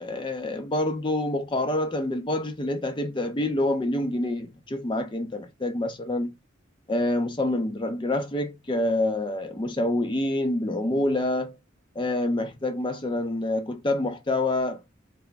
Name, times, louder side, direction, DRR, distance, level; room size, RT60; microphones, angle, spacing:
voice 1, 0.0-6.3 6.9-11.5 12.0-14.8, left 1 dB, 25° left, 0.4 m, -27 dB
3.4 x 3.0 x 3.8 m
head